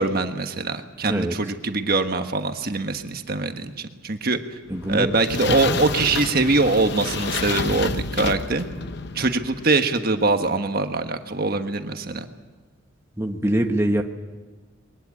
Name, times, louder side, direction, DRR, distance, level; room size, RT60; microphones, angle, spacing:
voice 1, 0.0-4.4 4.9-8.7 9.1-12.2, right 3 dB, 45° right, 6 dB, 1.4 m, -23 dB
sound 1, 4.7-9.6, left 4 dB, 55° left, 0.8 m, -29 dB
voice 2, 4.7-5.1 5.5-5.8 13.2-14.0, right 1 dB, 15° right, 2 dB, 1.2 m, -24 dB
22.0 x 19.0 x 8.6 m, 1.3 s
head